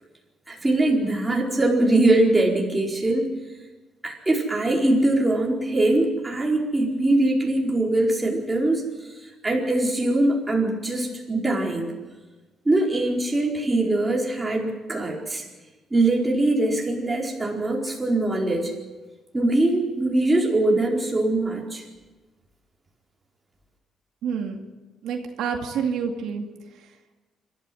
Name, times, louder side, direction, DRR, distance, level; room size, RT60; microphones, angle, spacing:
voice 1, 0.5-3.3 4.0-8.8 9.4-11.9 12.6-15.4 15.9-18.7 19.3-21.8, right 2 dB, 15° right, -2 dB, 4.6 m, -22 dB
voice 2, 24.2-24.6 25.0-26.4, right 6 dB, 85° right, 3 dB, 2.2 m, -28 dB
26.5 x 13.5 x 7.8 m, 1.2 s
cardioid pair, 130°, 0 cm